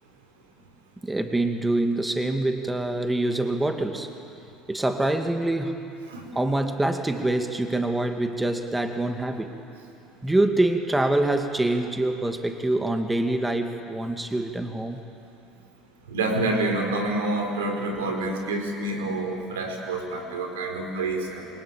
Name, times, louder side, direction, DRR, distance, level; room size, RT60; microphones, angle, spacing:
voice 1, 1.0-4.1 4.7-5.8 6.3-9.5 10.2-15.0, right 2 dB, 10° right, 5 dB, 2.3 m, -25 dB
voice 2, 16.1-21.5, right 2 dB, 85° right, 3 dB, 4.5 m, -27 dB
28.5 x 23.0 x 8.9 m, 2.7 s
hypercardioid pair, 75°, 0 cm